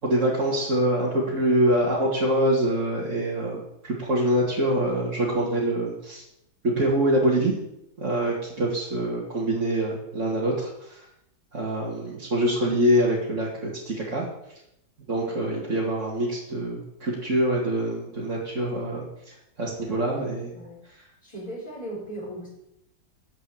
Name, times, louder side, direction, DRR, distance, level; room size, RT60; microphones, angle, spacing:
voice 1, 0.0-6.2 6.8-7.5 8.0-11.1 11.5-14.3 15.1-20.6 20.8-21.1, right 1 dB, 45° right, -6 dB, 2.6 m, -25 dB
voice 2, 21.2-22.5, right 1 dB, 20° left, -10 dB, 4.8 m, -37 dB
12.5 x 5.6 x 8.7 m, 0.82 s
omnidirectional pair, 1.9 m